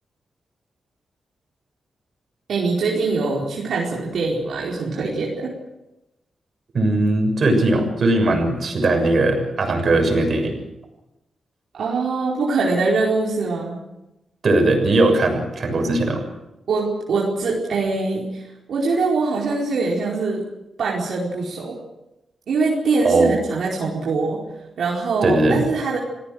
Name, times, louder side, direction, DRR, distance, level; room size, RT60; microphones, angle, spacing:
voice 1, 2.5-5.6 11.7-13.8 16.7-20.5 20.8-21.8 22.5-24.4 24.8-26.0, right 3 dB, 75° right, -4 dB, 4.7 m, -23 dB
voice 2, 6.7-10.6 14.4-16.2 23.0-23.4 25.2-25.6, right 2 dB, 55° right, 4 dB, 6.8 m, -19 dB
28.5 x 17.5 x 6.4 m, 0.93 s
cardioid pair, 90°, 0 cm